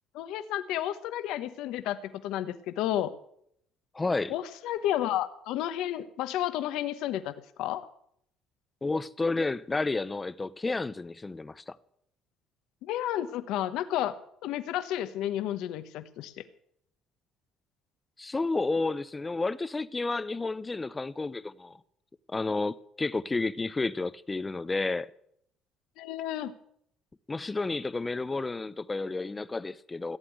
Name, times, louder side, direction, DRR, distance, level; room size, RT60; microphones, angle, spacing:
voice 1, 0.1-3.1 4.3-7.3 7.6-7.8 12.8-14.1 14.4-16.3 26.0-26.5, left 12 dB, 75° left, 1.0 m, -31 dB
voice 2, 3.9-4.3 8.8-11.8 18.2-21.8 22.3-25.1 27.3-30.2, left 3 dB, 20° left, 0.6 m, -31 dB
16.0 x 8.3 x 8.0 m
cardioid pair, 105°, 0 cm